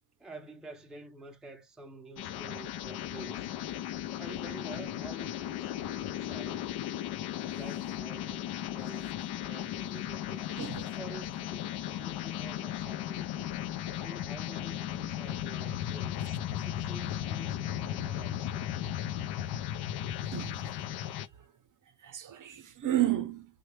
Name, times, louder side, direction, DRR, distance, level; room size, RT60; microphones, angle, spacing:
voice 1, 0.2-3.6 4.1-6.7 7.5-9.1 9.4-10.6 11.0-13.5 14.0-16.3 16.7-18.8, right 2 dB, ahead, 0.5 m, -49 dB
sound 1, 2.2-21.3, left 11 dB, 65° left, 0.5 m, -36 dB
voice 2, 10.5-11.0 13.4-13.5 20.3-20.8 22.0-23.5, right 12 dB, 45° right, 0.7 m, -32 dB
3.1 x 2.2 x 3.1 m
cardioid pair, 90°, 42 cm